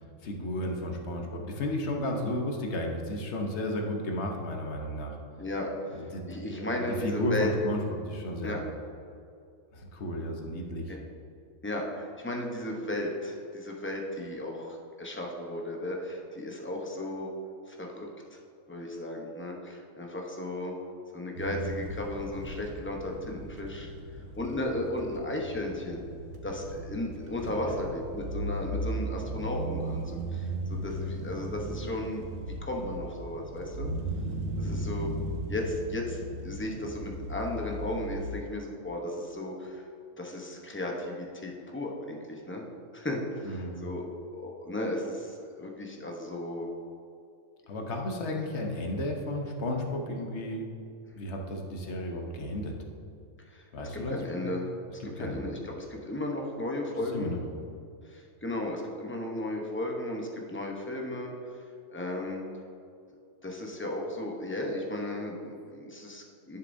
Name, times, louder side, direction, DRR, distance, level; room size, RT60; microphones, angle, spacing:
voice 1, 0.2-5.2 5.9-8.6 9.7-10.9 27.4-27.8 34.7-35.0 43.4-43.9 47.7-50.7 51.1-52.8 53.7-54.6 55.0-55.5 57.0-57.4, left 1 dB, 60° left, 2 dB, 1.2 m, -33 dB
voice 2, 5.4-7.5 8.4-8.6 10.9-11.0 11.6-17.3 17.7-18.4 18.7-20.7 21.1-23.9 24.4-26.0 26.4-33.9 34.6-35.1 35.5-39.9 40.2-42.6 42.9-44.0 44.3-46.7 53.5-53.6 54.1-54.7 55.0-57.4 58.0-61.6 61.9-62.4 63.4-66.6, left 1 dB, 10° left, 0 dB, 0.7 m, -35 dB
sound 1, 21.4-38.4, right 1 dB, 85° right, 1.1 m, -37 dB
11.0 x 6.6 x 2.7 m, 2.5 s
omnidirectional pair, 1.4 m